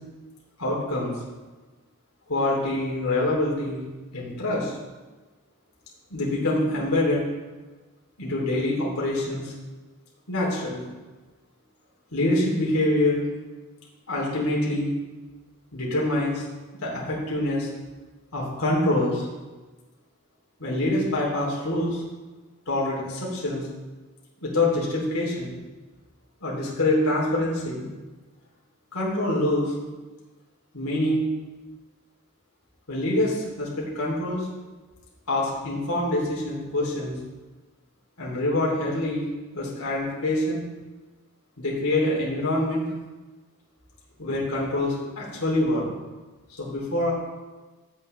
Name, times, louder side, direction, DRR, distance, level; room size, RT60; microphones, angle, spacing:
voice 1, 0.6-1.1 2.3-3.8 4.1-4.7 6.1-7.2 8.2-9.5 10.3-10.9 12.1-13.2 14.1-14.9 15.7-16.4 16.8-17.7 18.3-19.3 20.6-22.0 22.7-23.7 24.4-25.6 26.4-27.9 28.9-29.7 30.7-31.2 32.9-34.5 35.3-37.1 38.2-39.3 39.5-40.6 41.6-42.8 44.2-45.9 46.6-47.1, left 1 dB, 90° left, -4 dB, 3.0 m, -25 dB
13.0 x 8.5 x 3.3 m, 1.3 s
head